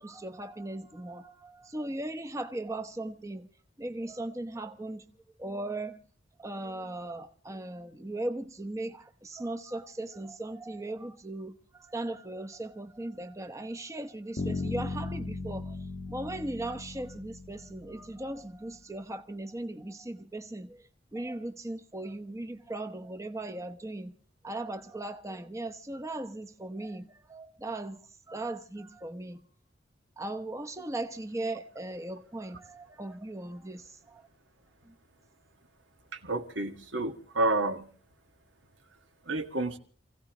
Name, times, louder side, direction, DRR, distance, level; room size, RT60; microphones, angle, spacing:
voice 1, 0.0-3.5 3.8-5.1 5.4-6.0 6.4-15.8 16.1-24.1 24.4-28.0 28.3-29.5 30.2-34.3 34.8-34.9, right 1 dB, 15° right, 0.8 m, -38 dB
Bass guitar, 14.4-18.3, left 3 dB, 85° left, 1.4 m, -37 dB
voice 2, 36.1-37.9 39.3-39.8, right 2 dB, 80° right, 1.7 m, -30 dB
28.5 x 16.0 x 3.0 m
head